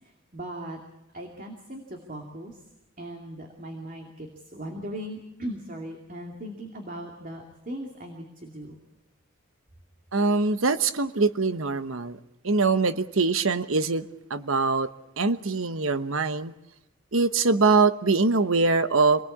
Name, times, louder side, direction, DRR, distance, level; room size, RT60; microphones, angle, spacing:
voice 1, 0.0-0.8 1.1-2.6 3.0-8.8, right 1 dB, 40° right, 3 dB, 2.6 m, -38 dB
voice 2, 10.1-12.2 12.4-14.0 14.3-14.9 15.2-16.5 17.1-19.2, right 4 dB, 70° right, 11 dB, 1.1 m, -23 dB
26.5 x 19.5 x 8.6 m, 0.86 s
head